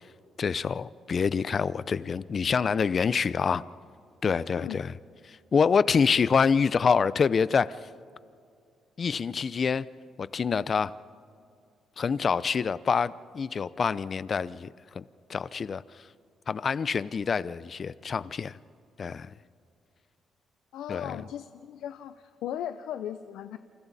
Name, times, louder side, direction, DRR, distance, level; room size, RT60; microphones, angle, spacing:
voice 1, 0.4-3.6 4.2-4.9 5.3-7.8 9.0-9.9 10.2-10.9 12.0-14.7 14.9-15.0 15.3-15.8 16.5-18.6 19.0-19.3 20.9-21.2, left 6 dB, 45° left, 18 dB, 0.6 m, -26 dB
voice 2, 20.7-23.6, left 10 dB, 85° left, 10 dB, 0.6 m, -37 dB
28.5 x 27.5 x 4.2 m, 2.4 s
cardioid pair, 90°, 0 cm